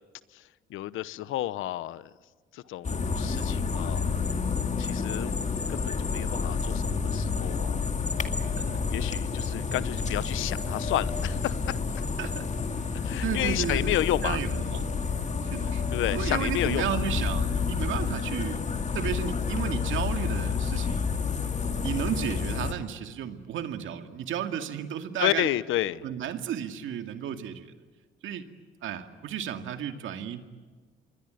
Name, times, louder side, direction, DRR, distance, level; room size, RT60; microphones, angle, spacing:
voice 1, 0.7-2.1 2.5-4.0 4.8-7.8 8.9-11.6 13.0-14.4 15.9-16.8 25.2-26.0, left 14 dB, 85° left, 17 dB, 0.9 m, -31 dB
sound 1, 2.8-22.7, left 5 dB, 35° left, 2.2 m, -29 dB
voice 2, 2.8-3.4 8.5-9.1 12.2-12.4 13.2-13.9 14.2-14.8 15.5-15.8 16.1-18.6 18.9-21.1 21.8-25.5 26.0-27.7 28.2-28.5 28.8-30.4, right 9 dB, 80° right, 7 dB, 2.3 m, -33 dB
27.5 x 22.0 x 9.2 m, 1.5 s
cardioid pair, 90°, 20 cm